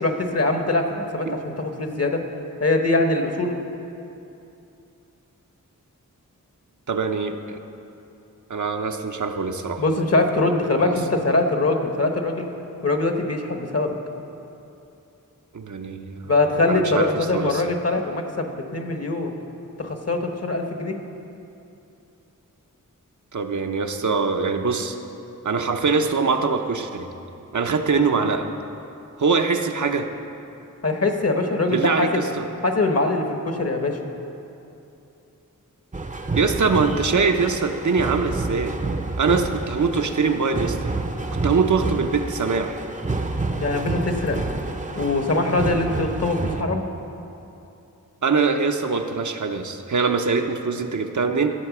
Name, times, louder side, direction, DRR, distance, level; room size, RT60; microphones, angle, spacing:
voice 1, 0.0-2.2 2.6-3.6 9.8-12.5 12.8-14.0 16.2-19.3 19.8-20.9 30.8-32.2 32.6-34.0 43.6-44.4 45.0-46.8, left 2 dB, 50° left, 4 dB, 1.1 m, -22 dB
voice 2, 6.9-7.6 8.5-9.8 10.8-10.9 15.5-16.3 16.7-17.6 23.3-25.0 25.4-27.1 27.5-28.5 29.2-30.1 31.7-32.4 36.3-38.7 39.2-40.8 41.4-42.8 48.2-51.5, right 4 dB, 65° right, 5 dB, 0.7 m, -23 dB
sound 1, 35.9-46.6, right 2 dB, 25° right, 0.6 m, -29 dB
13.0 x 7.4 x 6.0 m, 2.8 s
wide cardioid pair, 85°, 32 cm